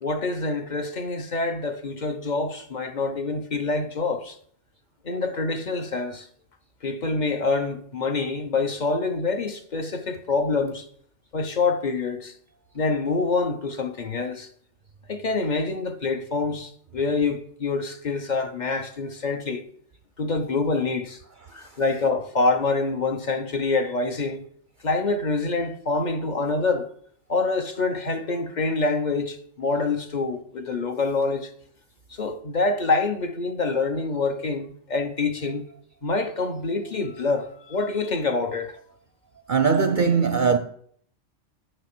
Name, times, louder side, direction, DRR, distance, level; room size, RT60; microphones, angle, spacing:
voice 1, 0.0-4.4 5.0-6.3 6.8-10.8 11.3-12.3 12.7-14.5 15.1-19.6 20.2-21.2 21.5-24.4 24.8-26.9 27.3-31.5 32.1-35.6 36.0-38.7, left 3 dB, 40° left, 0.9 m, -26 dB
voice 2, 39.5-40.6, right 5 dB, 50° right, 0.6 m, -20 dB
8.9 x 6.5 x 6.1 m
omnidirectional pair, 1.3 m